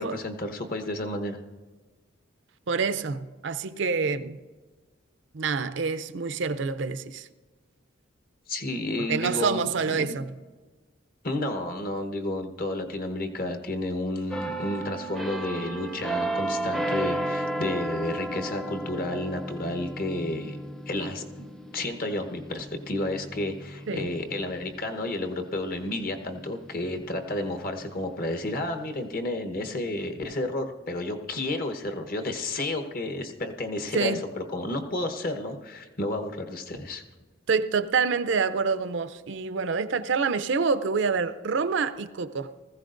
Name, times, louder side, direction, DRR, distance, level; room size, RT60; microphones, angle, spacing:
voice 1, 0.0-1.4 8.5-10.1 11.2-20.6 20.9-21.5 21.7-37.0, left 1 dB, 50° left, 1.0 m, -31 dB
voice 2, 2.7-4.4 5.3-7.3 9.0-10.3 23.9-24.1 33.9-34.2 37.5-42.5, right 5 dB, 65° right, 0.5 m, -27 dB
sound 1, 14.3-25.8 26.3-26.5, right 1 dB, ahead, 0.6 m, -34 dB
19.5 x 15.0 x 2.6 m
head